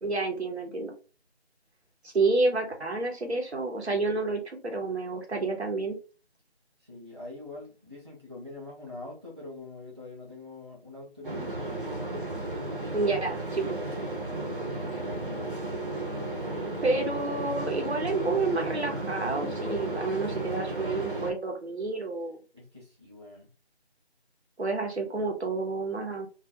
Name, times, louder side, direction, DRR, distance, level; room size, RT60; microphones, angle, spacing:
voice 1, 0.0-0.9 2.0-6.0 12.9-13.8 16.8-22.4 24.6-26.3, right 3 dB, 75° right, 2 dB, 1.1 m, -29 dB
voice 2, 6.8-11.9 14.3-15.6 22.5-23.5, left 2 dB, 25° right, -6 dB, 0.7 m, -44 dB
sound 1, 11.2-21.3, right 2 dB, 50° right, 1.0 m, -34 dB
2.5 x 2.4 x 2.7 m, 0.34 s
figure-of-eight pair, 170°, 33 cm